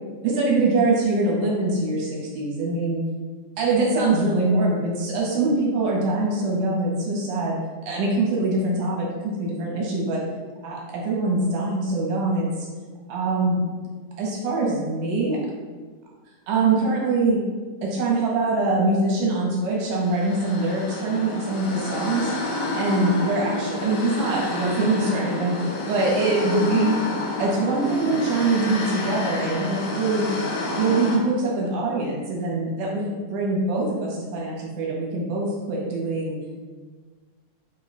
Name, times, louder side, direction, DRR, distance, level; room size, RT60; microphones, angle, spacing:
voice 1, 0.2-3.0 3.6-7.6 7.9-10.2 10.6-12.7 13.1-13.6 14.2-15.4 16.5-17.4 17.8-22.3 22.8-27.0 27.4-30.3 30.8-36.4, right 2 dB, 75° right, -3 dB, 2.1 m, -23 dB
sound 1, 19.9-31.2, left 2 dB, 80° left, 1.5 m, -30 dB
5.1 x 2.2 x 4.0 m, 1.5 s
omnidirectional pair, 3.8 m